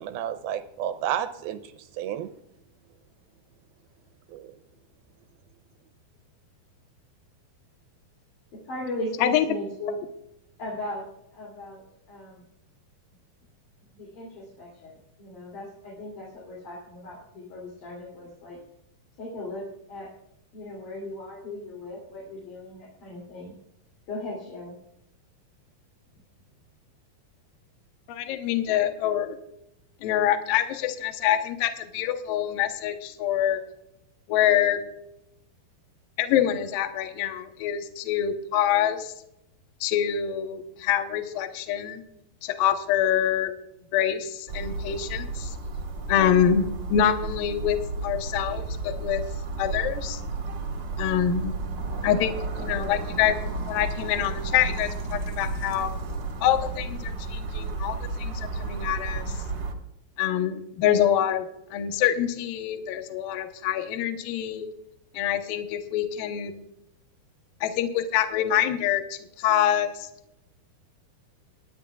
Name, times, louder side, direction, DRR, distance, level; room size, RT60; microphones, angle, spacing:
voice 1, 0.0-1.6 2.0-2.3 4.3-4.5, right 10 dB, 85° right, 9 dB, 2.2 m, -31 dB
voice 2, 8.5-10.0 10.6-11.1 11.3-12.4 13.9-14.9 15.2-18.6 19.2-20.1 20.5-23.6 24.1-24.8, left 1 dB, 50° left, -3 dB, 3.9 m, -37 dB
voice 3, 28.1-29.4 30.0-33.6 34.3-34.8 36.2-39.1 39.8-42.0 42.4-43.5 43.9-45.5 46.1-46.6 46.9-47.8 48.0-49.2 49.6-50.2 51.0-51.5 52.0-53.4 53.7-55.9 56.4-59.2 60.2-61.5 61.7-64.7 65.1-66.5 67.6-70.1, left 10 dB, 70° left, 7 dB, 2.3 m, -25 dB
sound 1, 44.5-59.7, right 3 dB, 55° right, 1.2 m, -32 dB
22.0 x 11.0 x 2.3 m, 0.80 s
omnidirectional pair, 4.8 m